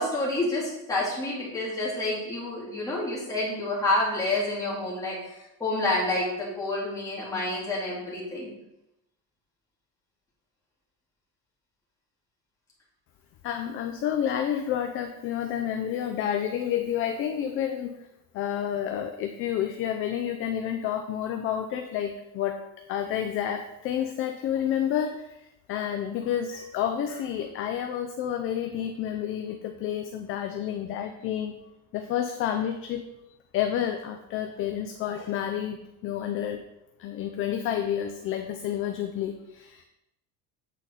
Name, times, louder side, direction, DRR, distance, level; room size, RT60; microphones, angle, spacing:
voice 1, 0.0-8.5, left 2 dB, 10° left, -7 dB, 2.0 m, -28 dB
voice 2, 13.4-17.9 18.3-22.6 22.9-31.6 31.9-33.0 33.5-35.8 36.0-36.6 37.0-39.8, left 9 dB, 40° left, 6 dB, 0.4 m, -29 dB
8.1 x 4.0 x 4.2 m, 0.88 s
cardioid pair, 170°, 33 cm